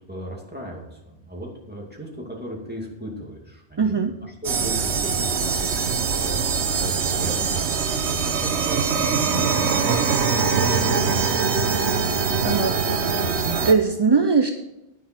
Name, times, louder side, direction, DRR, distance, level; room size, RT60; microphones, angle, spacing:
voice 1, 0.1-7.7 8.0-10.1 10.4-11.8 12.5-13.2, equal, 10° right, -2 dB, 2.4 m, -36 dB
voice 2, 3.8-4.1 12.1-12.7 13.4-14.5, right 5 dB, 35° right, 7 dB, 0.4 m, -21 dB
sound 1, 4.4-13.7, right 5 dB, 85° right, 1.2 m, -23 dB
10.0 x 9.5 x 4.5 m, 0.89 s
omnidirectional pair, 1.1 m